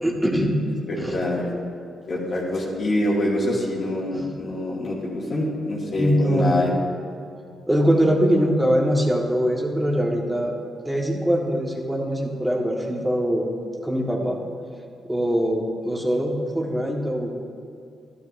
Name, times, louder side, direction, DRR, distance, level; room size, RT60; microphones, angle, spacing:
voice 1, 0.0-0.6 1.0-1.2 4.1-4.3 6.0-6.7 7.7-10.6 10.8-13.5 13.8-14.4 15.0-17.3, equal, 10° right, -1 dB, 1.8 m, -22 dB
voice 2, 0.9-1.5 2.1-6.7, left 1 dB, 55° left, -6 dB, 2.5 m, -25 dB
12.0 x 12.0 x 2.8 m, 2.4 s
cardioid pair, 65°, 0 cm